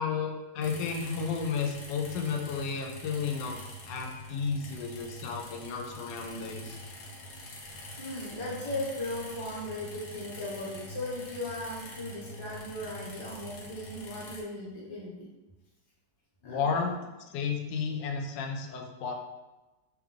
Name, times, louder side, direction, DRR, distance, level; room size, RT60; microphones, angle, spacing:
voice 1, 0.0-6.8 16.4-16.9 17.3-19.1, left 5 dB, 85° left, 3 dB, 1.2 m, -32 dB
sound 1, 0.6-14.4, equal, 55° left, 0.9 m, -45 dB
voice 2, 8.0-15.3 16.4-16.6, left 1 dB, 20° left, -6 dB, 0.9 m, -37 dB
3.5 x 3.2 x 3.6 m, 1.1 s
omnidirectional pair, 1.9 m